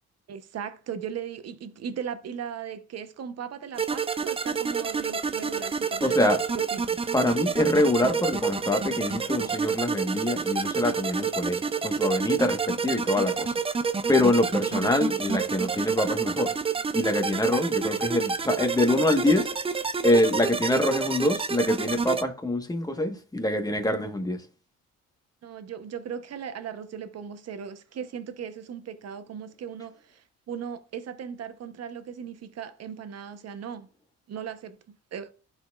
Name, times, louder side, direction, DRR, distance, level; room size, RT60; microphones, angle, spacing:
voice 1, 0.3-6.2 6.5-6.9 25.4-33.9 34.3-35.3, right 7 dB, 55° right, 0.9 m, -38 dB
sound 1, 3.8-22.2, right 5 dB, 20° right, 0.4 m, -29 dB
voice 2, 6.0-6.4 7.1-13.5 14.1-16.5 16.9-19.5 20.0-24.4, left 1 dB, 10° left, 1.3 m, -25 dB
12.0 x 4.3 x 2.4 m
cardioid pair, 90°, 30 cm